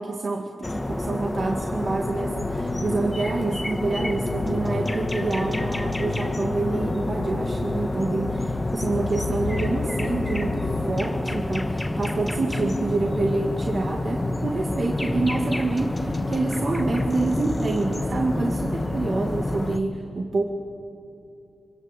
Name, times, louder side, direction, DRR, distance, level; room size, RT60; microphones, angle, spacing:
voice 1, 0.0-20.4, right 3 dB, 40° right, 1 dB, 2.1 m, -27 dB
sound 1, 0.6-19.8, left 2 dB, 15° left, 1.2 m, -28 dB
sound 2, 2.3-10.9, left 5 dB, 60° left, 1.0 m, -35 dB
26.0 x 24.5 x 8.4 m, 2.7 s
wide cardioid pair, 115°, 0 cm